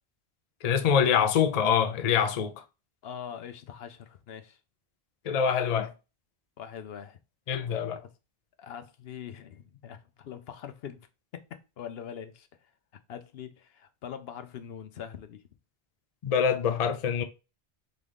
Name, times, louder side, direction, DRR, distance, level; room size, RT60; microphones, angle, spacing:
voice 1, 0.6-2.6 5.2-5.9 7.5-8.0 16.2-17.2, left 7 dB, 45° left, 0.6 m, -25 dB
voice 2, 3.0-4.6 6.6-7.2 8.6-11.0 11.3-12.5 13.1-15.4, left 8 dB, 75° left, 0.8 m, -42 dB
3.9 x 3.7 x 3.4 m
omnidirectional pair, 1.1 m